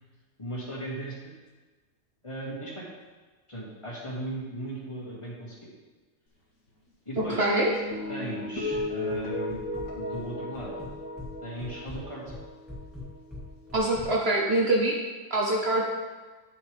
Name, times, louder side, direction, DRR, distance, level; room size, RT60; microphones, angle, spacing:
voice 1, 0.4-1.3 2.2-2.9 3.5-5.7 7.1-7.5 8.1-9.6 9.9-11.0 11.4-12.2, right 1 dB, 20° left, -5 dB, 1.8 m, -37 dB
sound 1, 7.2-13.7, left 2 dB, 80° left, 1.9 m, -36 dB
voice 2, 7.4-7.7 13.7-15.0 15.3-15.8, right 1 dB, 50° right, -1 dB, 1.1 m, -24 dB
sound 2, 8.7-9.2 9.5-10.3 10.5-11.3 11.6-14.1, left 2 dB, ahead, 1.6 m, -41 dB
10.0 x 6.6 x 3.4 m, 1.3 s
omnidirectional pair, 1.4 m